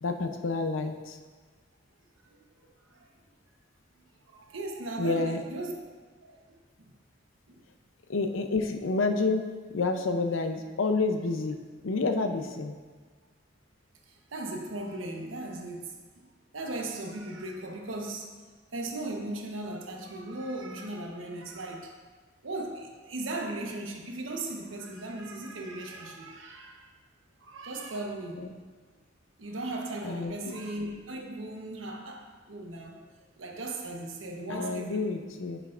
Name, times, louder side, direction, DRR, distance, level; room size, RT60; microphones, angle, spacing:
voice 1, 0.0-1.2 5.0-5.4 8.1-9.5 9.7-11.6 11.8-12.7 28.4-28.5 30.0-30.5 34.5-35.6, left 3 dB, 85° left, 6 dB, 0.6 m, -29 dB
voice 2, 2.3-3.1 4.3-5.8 6.2-6.9 14.0-15.9 16.5-18.3 18.7-21.9 22.4-26.9 27.4-28.5 29.4-33.1 33.4-35.1, right 2 dB, 90° right, 1 dB, 1.0 m, -37 dB
9.1 x 6.6 x 2.5 m, 1.4 s
head